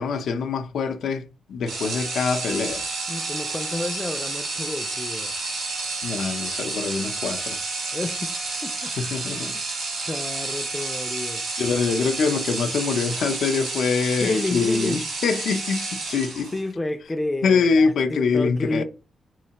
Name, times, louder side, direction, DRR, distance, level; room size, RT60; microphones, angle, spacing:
voice 1, 0.0-2.9 6.0-7.6 8.8-9.5 11.6-16.5 17.4-18.8, left 5 dB, 75° left, 0.5 m, -24 dB
sound 1, 1.7-16.7, right 3 dB, 90° right, 1.8 m, -30 dB
voice 2, 3.1-5.4 7.9-8.4 8.6-9.0 9.3-9.6 10.1-11.5 14.2-15.0 16.5-18.8, left 2 dB, 15° left, 0.3 m, -30 dB
3.6 x 3.2 x 2.9 m
wide cardioid pair, 140°, 0 cm